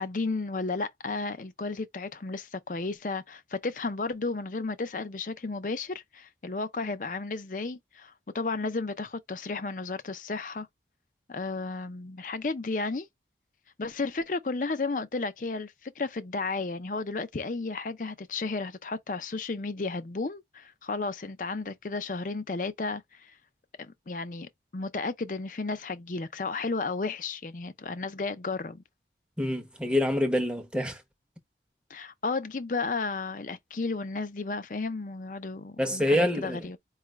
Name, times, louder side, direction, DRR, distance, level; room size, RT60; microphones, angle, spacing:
voice 1, 0.0-10.7 11.3-13.1 13.8-23.3 23.8-28.8 31.9-36.8, left 3 dB, 45° left, 0.5 m, -33 dB
voice 2, 29.4-31.0 35.8-36.6, left 1 dB, 5° right, 0.8 m, -26 dB
4.8 x 2.3 x 3.0 m
head